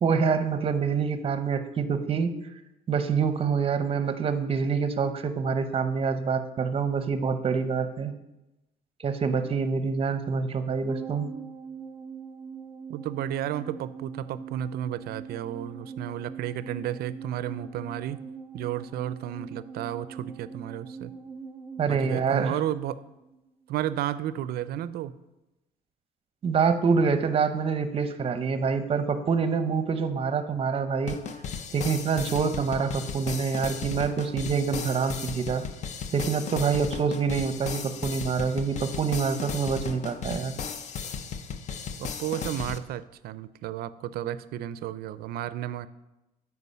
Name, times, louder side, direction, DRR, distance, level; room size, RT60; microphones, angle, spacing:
voice 1, 0.0-2.3 2.9-8.1 9.0-11.3 21.8-22.6 26.4-31.2 31.7-35.6 36.1-40.5, right 5 dB, 35° right, 10 dB, 0.7 m, -26 dB
sound 1, 10.9-23.4 23.7-23.8, right 5 dB, 15° right, 1.0 m, -42 dB
voice 2, 12.9-18.2 18.5-21.1 21.9-23.0 23.7-25.1 42.0-45.9, right 11 dB, 70° right, 16 dB, 0.4 m, -32 dB
sound 2, 31.1-42.8, left 6 dB, 45° left, 0.6 m, -36 dB
8.2 x 4.7 x 5.6 m, 0.97 s
cardioid pair, 110°, 17 cm